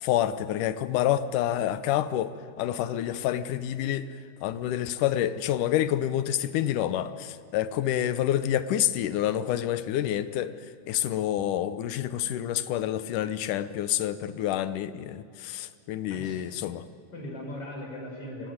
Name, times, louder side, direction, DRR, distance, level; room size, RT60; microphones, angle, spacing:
voice 1, 0.0-2.3 2.6-4.1 4.4-10.5 10.9-16.8, left 11 dB, 85° left, 14 dB, 2.4 m, -28 dB
voice 2, 2.8-3.1 16.1-18.5, left 1 dB, 45° left, 0 dB, 6.0 m, -40 dB
27.5 x 16.5 x 9.4 m, 2.3 s
omnidirectional pair, 3.6 m